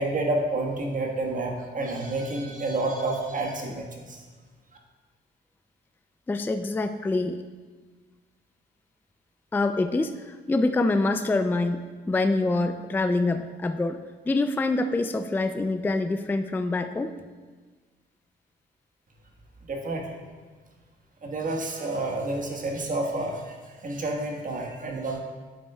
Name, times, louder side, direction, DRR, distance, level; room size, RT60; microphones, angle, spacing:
voice 1, 0.0-4.2 19.7-20.2 21.2-25.2, right 2 dB, 40° right, 1 dB, 1.4 m, -29 dB
voice 2, 6.3-7.4 9.5-14.0 14.3-17.1, left 2 dB, 10° left, 9 dB, 0.3 m, -25 dB
9.3 x 7.5 x 2.3 m, 1.4 s
cardioid pair, 90°, 20 cm